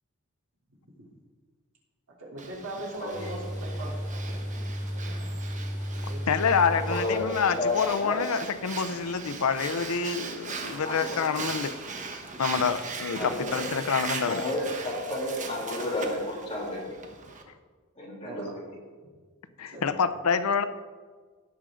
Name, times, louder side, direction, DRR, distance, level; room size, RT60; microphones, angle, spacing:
voice 1, 2.2-4.4 4.9-5.3 6.1-6.2 18.2-18.5 19.7-20.0, right 2 dB, 85° right, -4 dB, 3.3 m, -40 dB
Breathing, 2.4-17.4, right 4 dB, 35° right, 1.0 m, -39 dB
voice 2, 3.0-3.3 6.7-8.2 10.8-11.2 13.2-13.6 14.2-16.9 18.0-18.5, left 2 dB, 30° left, -5 dB, 3.2 m, -31 dB
sound 1, 3.1-7.6 7.8-7.9, equal, 55° left, 3.0 m, -34 dB
voice 3, 6.3-11.7 12.4-14.4 19.6-20.6, left 6 dB, 85° left, 12 dB, 0.6 m, -27 dB
17.5 x 6.3 x 3.8 m, 1.5 s
head